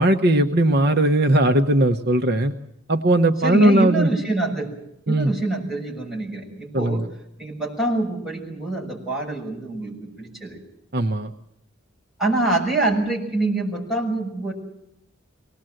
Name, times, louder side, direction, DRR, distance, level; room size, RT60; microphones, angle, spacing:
voice 1, 0.0-2.5 2.9-4.1 5.1-5.3 6.7-7.1 10.9-11.3, right 1 dB, 50° right, 5 dB, 1.0 m, -18 dB
voice 2, 3.4-4.7 5.1-7.0 7.4-10.6 12.2-14.5, right 2 dB, ahead, -4 dB, 6.8 m, -25 dB
23.5 x 19.0 x 7.8 m, 0.81 s
head